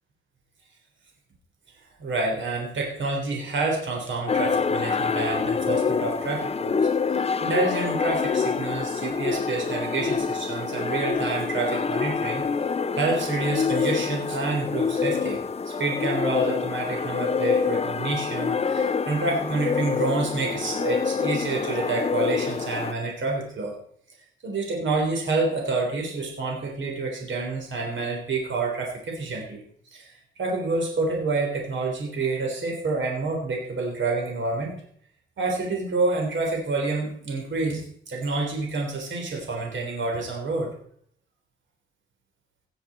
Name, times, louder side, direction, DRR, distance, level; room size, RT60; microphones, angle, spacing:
voice 1, 2.0-12.4 12.9-23.7 24.4-29.6 29.9-30.1 30.4-34.7 35.4-40.7, right 3 dB, 65° right, 0 dB, 3.7 m, -28 dB
sound 1, 4.3-22.9, left 5 dB, 30° left, 0.5 m, -26 dB
18.0 x 7.1 x 4.3 m, 0.62 s
wide cardioid pair, 120°, 21 cm